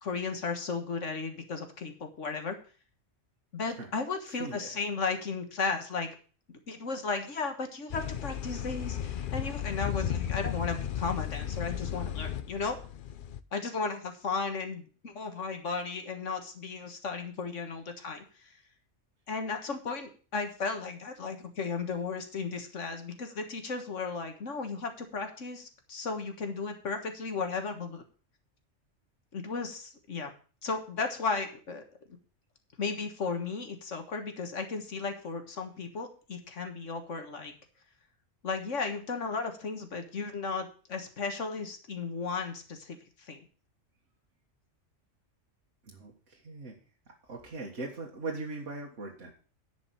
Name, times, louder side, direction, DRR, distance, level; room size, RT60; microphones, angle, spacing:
voice 1, 0.0-2.6 3.5-6.1 6.5-12.8 13.5-18.5 19.3-28.0 29.3-30.3 30.6-31.8 32.8-37.5 38.4-43.4, left 4 dB, 75° left, 6 dB, 1.8 m, -35 dB
voice 2, 4.3-4.7 45.8-46.8 47.2-49.3, right 3 dB, 75° right, -2 dB, 2.0 m, -40 dB
sound 1, 7.9-13.4, left 9 dB, 55° left, 0.7 m, -35 dB
10.5 x 5.2 x 8.3 m, 0.39 s
omnidirectional pair, 1.3 m